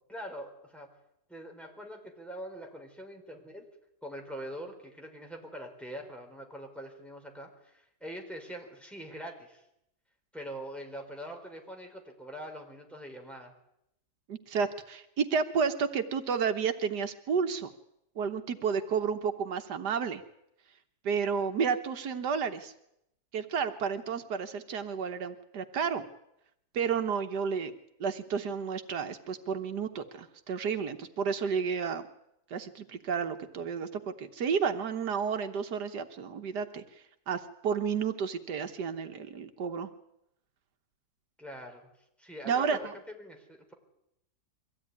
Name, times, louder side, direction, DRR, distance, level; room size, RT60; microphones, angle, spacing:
voice 1, 0.1-0.9 1.3-3.6 4.0-9.6 10.3-13.5 41.4-41.9 42.2-43.7, equal, ahead, 2 dB, 4.3 m, -43 dB
voice 2, 14.3-17.7 18.2-20.2 21.0-22.7 23.3-26.0 26.7-27.7 28.0-32.0 32.5-36.8 37.3-39.9 42.5-42.9, right 6 dB, 85° right, 8 dB, 1.8 m, -31 dB
23.5 x 16.0 x 9.6 m, 0.80 s
omnidirectional pair, 1.7 m